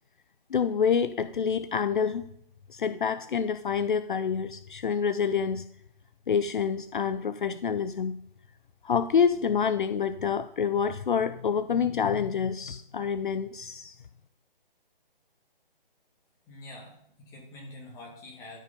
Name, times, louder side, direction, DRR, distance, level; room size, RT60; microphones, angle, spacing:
voice 1, 0.5-2.3 2.7-5.6 6.3-8.2 8.8-14.0, left 6 dB, 60° left, 12 dB, 0.5 m, -27 dB
voice 2, 16.5-18.6, left 2 dB, 10° left, -3 dB, 2.1 m, -46 dB
13.0 x 5.4 x 5.2 m, 0.69 s
hypercardioid pair, 155°, 29 cm